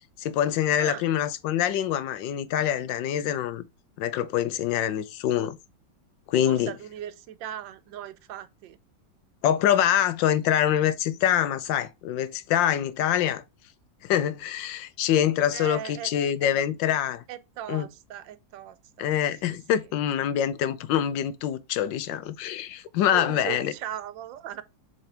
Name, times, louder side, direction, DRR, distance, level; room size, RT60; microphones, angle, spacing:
voice 1, 0.2-3.6 4.0-5.6 6.3-6.7 9.4-13.4 14.0-17.2 17.7-17.9 19.0-23.7, left 10 dB, 85° left, 1.4 m, -25 dB
voice 2, 0.8-1.1 6.5-8.8 15.5-16.1 16.4-16.5 17.3-19.1 23.1-24.6, right 11 dB, 85° right, 1.4 m, -38 dB
7.3 x 4.0 x 3.4 m
omnidirectional pair, 2.0 m